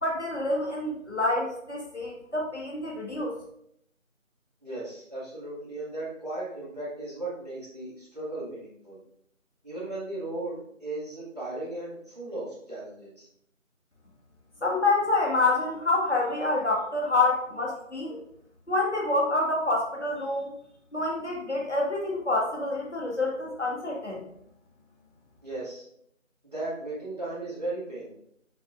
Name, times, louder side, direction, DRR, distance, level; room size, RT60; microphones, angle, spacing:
voice 1, 0.0-3.3 14.6-18.2 18.7-20.5 20.9-24.2, left 2 dB, 60° left, -2 dB, 2.0 m, -27 dB
voice 2, 4.6-9.0 9.6-13.3 25.4-25.8 26.4-28.2, right 2 dB, 30° right, -9 dB, 2.4 m, -36 dB
6.6 x 5.9 x 2.6 m, 0.72 s
figure-of-eight pair, 175°, 40 cm